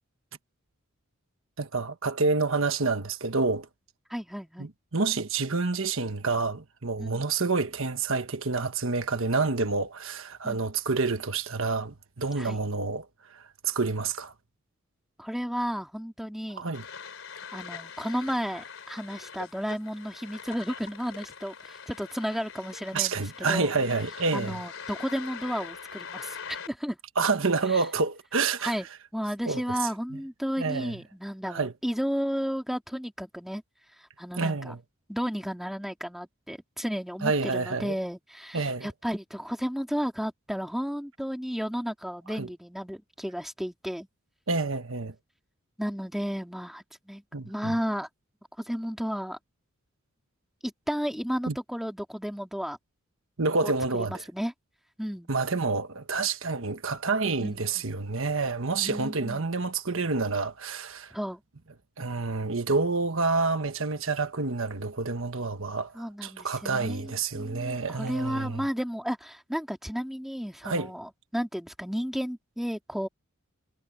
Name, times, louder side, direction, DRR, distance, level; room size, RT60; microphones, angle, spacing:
voice 1, 1.6-3.7 4.6-13.1 13.3-14.3 16.5-16.8 22.9-24.6 27.2-28.7 29.5-29.6 30.6-31.0 31.5-31.7 34.4-34.8 37.2-37.9 38.5-38.9 42.4-42.5 44.5-45.1 47.3-47.7 51.5-51.6 53.4-54.2 55.3-61.1 62.0-68.6 70.6-70.9, right 4 dB, 65° right, 1.3 m, -28 dB
voice 2, 4.1-4.7 7.0-7.3 10.4-10.6 12.4-12.6 15.2-16.7 17.5-23.7 24.3-27.0 27.7-27.8 28.6-28.9 29.1-33.6 34.0-34.7 35.1-44.1 45.8-48.1 48.6-49.4 50.6-52.8 53.6-54.5 55.0-55.3 57.4-57.8 58.8-59.5 61.1-61.4 65.9-73.1, equal, ahead, 2.2 m, -33 dB
sound 1, 16.7-26.7, left 6 dB, 65° left, 4.4 m, -43 dB
head